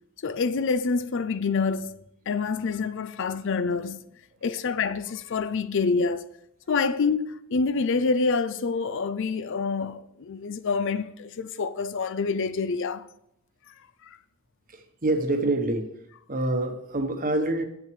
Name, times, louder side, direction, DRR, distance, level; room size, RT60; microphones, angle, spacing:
voice 1, 0.2-1.9 2.3-4.0 4.4-6.2 6.7-13.1, left 4 dB, 60° left, 0.5 m, -27 dB
voice 2, 14.7-15.9 16.3-17.7, right 2 dB, 40° right, 1.1 m, -26 dB
8.3 x 6.0 x 6.2 m
head